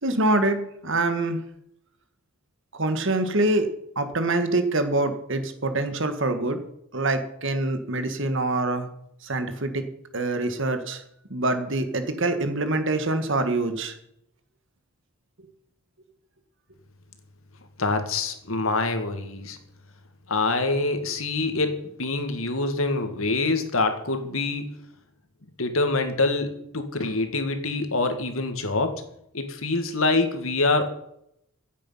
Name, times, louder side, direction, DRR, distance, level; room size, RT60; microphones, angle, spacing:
voice 1, 0.0-1.4 2.7-3.7 3.9-6.6 6.9-8.9 9.2-9.8 10.1-11.0 11.3-13.9, right 2 dB, 60° right, 8 dB, 1.7 m, -25 dB
voice 2, 17.8-19.6 20.3-24.8 25.6-29.0 29.3-30.9, left 3 dB, 75° left, 7 dB, 2.0 m, -25 dB
15.5 x 8.4 x 5.6 m, 0.75 s
head